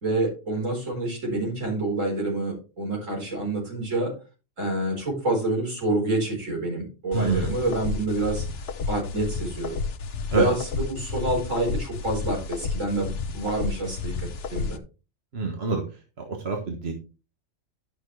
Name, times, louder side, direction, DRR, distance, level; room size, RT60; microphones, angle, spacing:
voice 1, 0.0-4.1 4.6-8.5 8.9-9.8 10.3-14.8, right 2 dB, 75° right, -1 dB, 4.9 m, -27 dB
sound 1, 7.1-14.8, left 4 dB, 55° left, 1.0 m, -31 dB
voice 2, 7.1-7.5 10.3-10.5 15.3-15.8 16.2-16.9, right 4 dB, 50° right, 2 dB, 1.5 m, -26 dB
11.5 x 6.1 x 3.3 m, 0.32 s
omnidirectional pair, 1.3 m